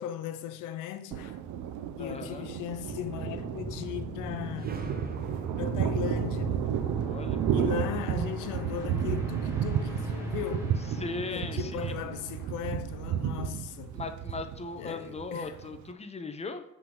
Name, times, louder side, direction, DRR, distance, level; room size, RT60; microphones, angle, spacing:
voice 1, 0.0-1.4 2.0-4.8 5.6-6.6 7.5-10.7 11.3-14.0 14.8-15.5, left 10 dB, 90° left, 0.6 m, -37 dB
Thunder, 1.1-15.9, right 9 dB, 75° right, 0.5 m, -33 dB
voice 2, 2.0-2.5 7.1-7.4 11.0-12.0 13.9-16.6, left 3 dB, 20° left, 0.7 m, -38 dB
sound 1, 2.7-13.5, equal, 10° right, 2.3 m, -40 dB
sound 2, 4.6-9.0, right 3 dB, 30° right, 0.9 m, -50 dB
7.4 x 4.0 x 3.8 m
cardioid pair, 90°, 30 cm